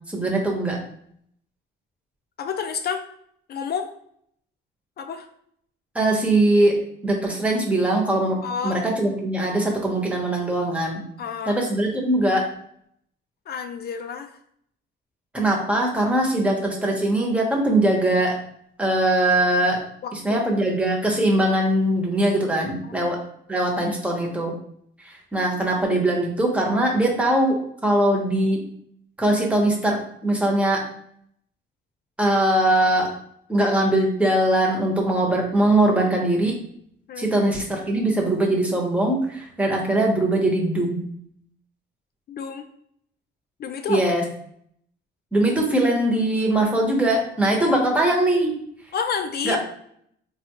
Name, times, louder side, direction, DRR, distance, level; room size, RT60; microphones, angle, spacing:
voice 1, 0.1-0.8 5.9-6.8 7.0-11.0 11.5-12.4 15.3-18.3 18.8-19.8 20.1-23.2 23.5-24.5 25.0-27.6 27.8-28.6 29.2-30.8 32.2-33.1 33.5-36.5 37.2-41.1 43.9-44.2 45.3-48.5 49.4-49.6, right 1 dB, 5° right, -1 dB, 0.9 m, -21 dB
voice 2, 2.4-3.0 3.5-3.9 5.0-5.3 8.4-8.8 11.2-11.6 13.5-14.4 20.0-20.4 22.8-23.1 37.1-37.3 42.3-42.7 43.6-44.0 47.5-47.8 48.9-49.6, left 6 dB, 55° left, 7 dB, 0.4 m, -30 dB
3.5 x 2.3 x 2.9 m, 0.68 s
cardioid pair, 90°, 20 cm